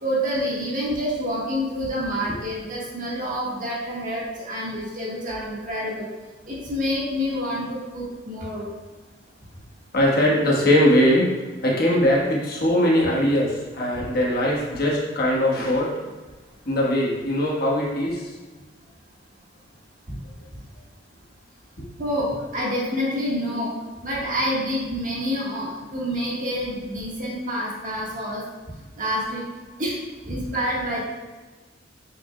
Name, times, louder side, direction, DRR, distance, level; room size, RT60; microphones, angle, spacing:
voice 1, 0.0-6.1 6.5-8.7 20.1-20.2 22.0-23.7 24.0-28.4 29.0-29.4 29.8-30.0 30.2-31.0, equal, 45° right, -5 dB, 1.5 m, -27 dB
voice 2, 9.9-11.3 11.6-15.9 16.6-18.2 21.8-21.9, left 1 dB, 60° left, -4 dB, 1.3 m, -20 dB
7.0 x 6.1 x 2.2 m, 1.3 s
head